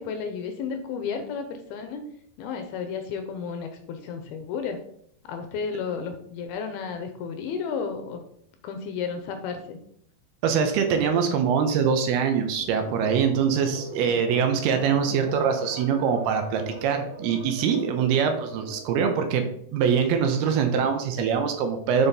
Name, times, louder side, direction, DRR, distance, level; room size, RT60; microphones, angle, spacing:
voice 1, 0.0-2.0 2.4-4.8 5.2-8.2 8.6-9.8, left 6 dB, 80° left, 6 dB, 2.4 m, -32 dB
voice 2, 10.4-22.1, right 6 dB, 75° right, 6 dB, 2.7 m, -23 dB
sound 1, 12.6-19.0, right 3 dB, 55° right, 1.6 m, -41 dB
7.1 x 5.5 x 4.1 m, 0.68 s
omnidirectional pair, 4.8 m